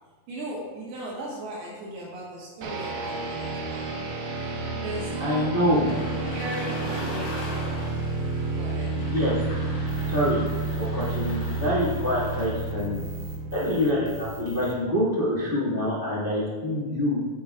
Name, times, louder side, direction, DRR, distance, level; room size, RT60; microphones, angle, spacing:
voice 1, 0.3-3.9 4.7-5.6 6.3-7.9 8.4-9.0, right 1 dB, 80° right, -5 dB, 3.4 m, -37 dB
sound 1, 2.6-14.8, right 3 dB, 65° right, 2.2 m, -31 dB
voice 2, 5.2-5.9 8.9-9.3 10.1-10.5 10.8-13.0 13.5-17.2, left 1 dB, 80° left, -7 dB, 0.5 m, -26 dB
sound 2, 5.7-12.8, left 2 dB, 55° left, 3.6 m, -40 dB
sound 3, 9.9-14.7, right 6 dB, 45° right, 1.7 m, -45 dB
15.5 x 8.7 x 2.4 m, 1.4 s
omnidirectional pair, 4.5 m